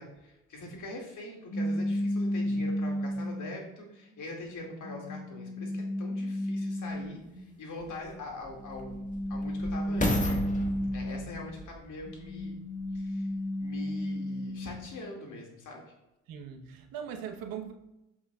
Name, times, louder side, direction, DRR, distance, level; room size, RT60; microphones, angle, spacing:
voice 1, 0.0-10.4 10.9-12.6 12.9-13.3 13.6-15.8, left 2 dB, 55° left, 0 dB, 2.4 m, -43 dB
sound 1, 1.5-3.7 4.3-7.4 8.6-11.5 12.0-14.9, equal, 75° left, 2.9 m, -33 dB
sound 2, 7.0-7.1 7.8-13.1 13.7-13.8, left 2 dB, 20° left, 1.7 m, -35 dB
voice 2, 16.3-17.7, right 8 dB, 65° right, 5 dB, 1.1 m, -40 dB
8.5 x 7.3 x 2.4 m, 0.92 s
hypercardioid pair, 50°, 37 cm